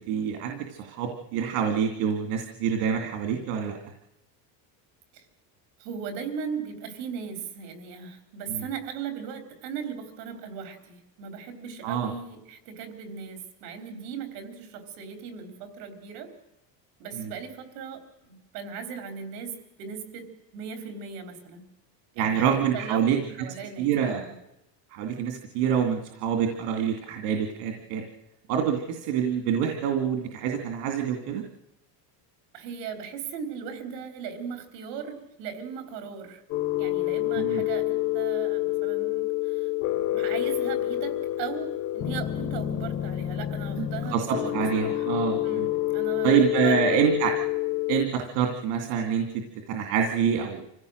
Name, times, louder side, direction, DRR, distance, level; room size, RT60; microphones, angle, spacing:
voice 1, 0.0-3.8 8.5-8.6 11.8-12.1 17.2-17.3 22.2-23.2 23.8-24.2 24.9-28.1 28.5-31.4 37.4-37.6 43.8-45.7 46.2-47.3 47.9-50.7, right 7 dB, 70° right, 4 dB, 2.4 m, -26 dB
voice 2, 5.8-16.3 17.0-19.5 19.8-21.6 22.2-24.4 32.5-36.4 36.8-39.7 40.1-45.1 45.4-47.1, right 7 dB, 85° right, 7 dB, 4.1 m, -38 dB
sound 1, 36.5-48.0, left 14 dB, 40° left, 1.1 m, -28 dB
25.5 x 16.0 x 6.5 m, 0.89 s
cardioid pair, 165°, 47 cm